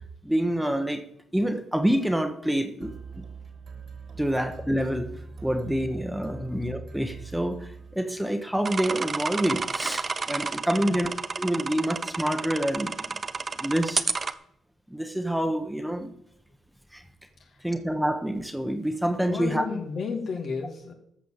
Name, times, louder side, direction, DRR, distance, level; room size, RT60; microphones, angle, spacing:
voice 1, 0.2-1.0 1.3-3.2 4.2-5.1 5.4-11.1 11.4-12.9 13.6-14.0 14.9-16.1 16.9-17.0 17.6-19.6, equal, 5° right, 6 dB, 1.3 m, -27 dB
sound 1, 2.8-8.5, right 3 dB, 60° right, 2.4 m, -42 dB
sound 2, 8.7-14.3, right 4 dB, 40° right, 0.7 m, -30 dB
voice 2, 10.7-11.1 17.4-17.7 19.2-20.9, left 5 dB, 65° left, 3 dB, 2.4 m, -33 dB
14.0 x 5.0 x 7.5 m, 0.72 s
cardioid pair, 75°, 0 cm